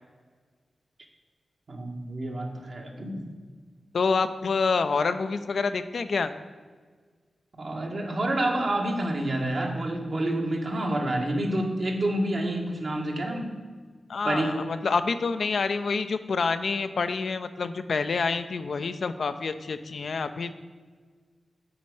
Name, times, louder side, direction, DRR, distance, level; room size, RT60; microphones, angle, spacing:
voice 1, 1.7-3.3 7.6-13.6 14.2-14.6, right 1 dB, 60° right, 1 dB, 1.3 m, -28 dB
voice 2, 3.9-6.3 14.1-20.5, left 4 dB, 75° left, 10 dB, 0.4 m, -27 dB
8.6 x 4.1 x 4.8 m, 1.6 s
cardioid pair, 40°, 0 cm